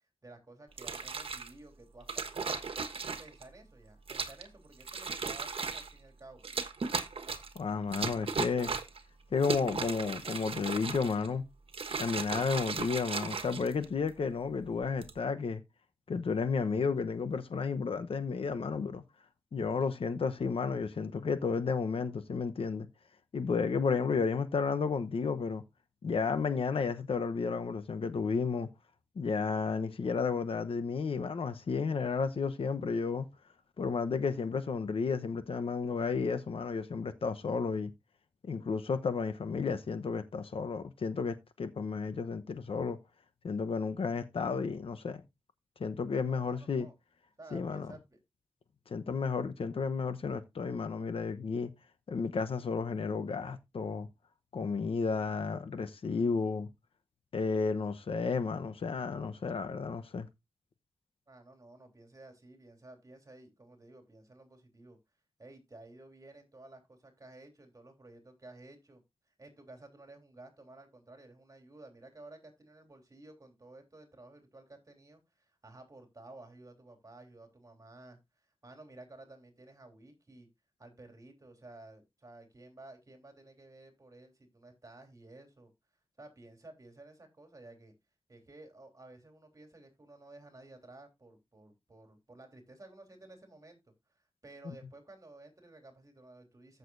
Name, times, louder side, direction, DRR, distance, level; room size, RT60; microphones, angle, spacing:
voice 1, 0.2-2.7 3.0-6.4 46.3-46.9 47.4-48.2 61.3-65.0 65.4-80.5 80.8-85.7 86.2-87.9 88.3-93.8 94.2-96.8, right 2 dB, 35° right, 3.3 m, -54 dB
sound 1, 0.7-1.5 2.1-3.4 4.1-4.5 4.8-5.9 6.4-7.6 7.9-9.0 9.4-11.3 11.7-14.1 14.8-15.2, right 5 dB, 85° right, 1.3 m, -36 dB
voice 2, 7.5-8.7 9.3-11.4 12.0-15.6 16.1-19.0 19.5-22.9 23.3-25.6 26.0-28.7 29.2-33.3 33.8-37.9 38.4-43.0 43.4-45.2 45.8-46.9 47.5-47.9 48.9-51.7 52.1-54.1 54.5-56.7 57.3-60.3, left 5 dB, 85° left, 0.9 m, -32 dB
14.5 x 6.7 x 2.6 m
wide cardioid pair, 115°, 9 cm